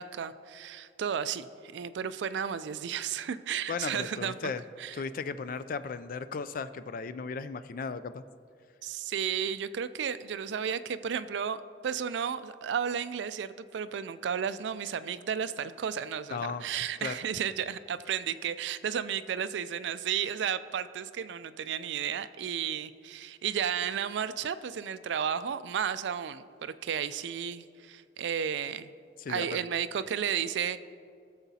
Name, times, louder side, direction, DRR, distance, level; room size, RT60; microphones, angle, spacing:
voice 1, 0.0-4.5 4.8-5.0 8.8-28.9 29.3-30.8, right 8 dB, 70° right, 13 dB, 0.3 m, -33 dB
voice 2, 3.7-4.6 4.9-8.2 16.3-16.6 17.0-17.1 29.2-29.7, left 5 dB, 45° left, 13 dB, 0.3 m, -36 dB
15.5 x 7.1 x 2.8 m, 2.3 s
head